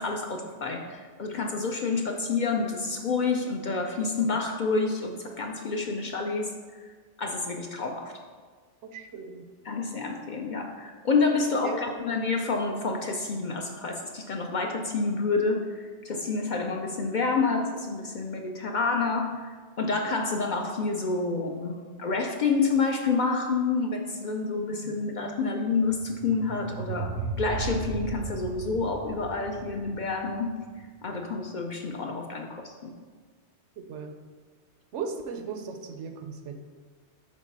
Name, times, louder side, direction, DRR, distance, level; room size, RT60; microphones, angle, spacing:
voice 1, 0.0-6.5 7.2-8.1 9.6-30.5 31.0-32.9, left 4 dB, 55° left, 3 dB, 0.5 m, -28 dB
voice 2, 8.9-9.5 11.6-11.8 24.8-24.9 33.9-34.2 34.9-36.5, right 6 dB, 85° right, 6 dB, 1.0 m, -36 dB
sound 1, 25.8-30.9, right 5 dB, 55° right, 0.5 m, -36 dB
6.5 x 4.0 x 5.2 m, 1.5 s
omnidirectional pair, 1.2 m